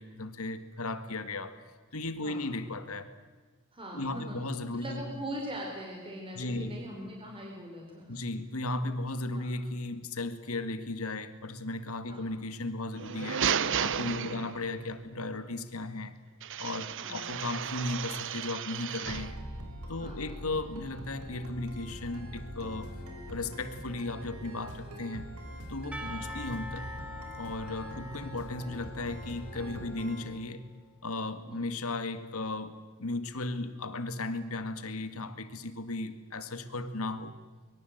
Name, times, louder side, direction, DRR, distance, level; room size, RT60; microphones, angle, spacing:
voice 1, 0.0-1.5 1.9-3.1 3.9-5.0 6.3-6.8 8.1-13.5 13.8-16.2 16.6-19.5 19.9-23.0 23.3-25.3 25.7-26.9 27.4-30.6 31.0-37.4, left 2 dB, 70° left, 10 dB, 2.0 m, -36 dB
voice 2, 3.7-4.4 4.7-8.2 9.3-9.5 12.1-12.3 14.2-14.5 17.0-17.2 20.0-20.3 26.0-26.2 27.9-28.0 31.5-31.6, equal, 25° right, -1 dB, 4.2 m, -41 dB
sound 1, 12.9-14.8 16.4-19.4, right 8 dB, 60° right, 0.8 m, -33 dB
sound 2, 19.1-30.3, equal, 85° right, 4.7 m, -43 dB
Percussion / Church bell, 25.9-30.7, left 2 dB, 5° right, 1.8 m, -45 dB
24.0 x 23.0 x 8.0 m, 1.4 s
head